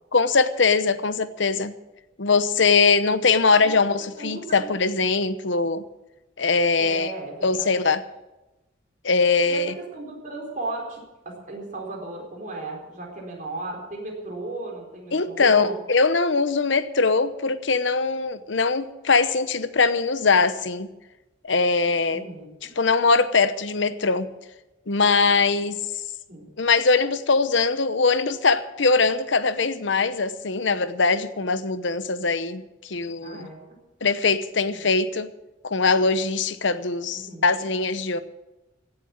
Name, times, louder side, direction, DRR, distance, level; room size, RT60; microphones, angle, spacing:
voice 1, 0.1-1.7 2.2-5.8 6.4-7.1 7.4-8.0 9.0-9.7 15.1-20.9 21.4-22.2 22.8-24.3 24.9-25.8 26.6-33.5 34.0-35.3 35.6-38.2, left 4 dB, 65° left, 13 dB, 0.9 m, -21 dB
voice 2, 4.2-4.7 6.8-7.8 9.5-15.8 22.1-22.7 26.3-26.5 33.2-33.8 34.6-34.9 37.1-37.5, right 2 dB, 40° right, -1 dB, 4.4 m, -36 dB
16.5 x 7.7 x 9.0 m, 1.0 s
head